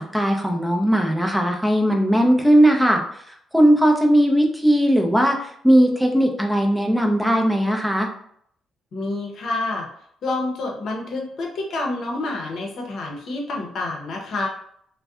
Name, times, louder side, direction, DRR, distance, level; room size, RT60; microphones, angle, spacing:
voice 1, 0.0-3.0 3.5-8.1, equal, ahead, 2 dB, 0.5 m, -18 dB
voice 2, 8.9-9.9 10.2-14.5, left 2 dB, 65° left, 0 dB, 0.7 m, -28 dB
2.5 x 2.1 x 2.3 m, 0.67 s
cardioid pair, 90°, 0 cm